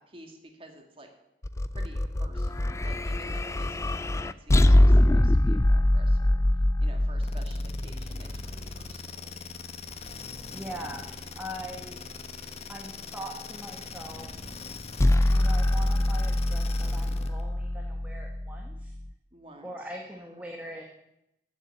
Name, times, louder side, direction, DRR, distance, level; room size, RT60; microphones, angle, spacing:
voice 1, 0.1-1.1 1.7-6.4 6.8-9.3 19.3-19.9, right 1 dB, 30° right, 3 dB, 2.3 m, -50 dB
sound 1, 1.4-8.7 15.0-19.1, left 1 dB, 15° left, 0.4 m, -24 dB
sound 2, 7.2-17.4, left 4 dB, 35° left, 1.2 m, -41 dB
voice 2, 10.5-11.0 11.3-12.0 12.7-14.3 15.2-18.9 19.6-20.8, equal, 10° right, 0 dB, 1.4 m, -41 dB
14.0 x 7.3 x 8.3 m, 0.85 s
head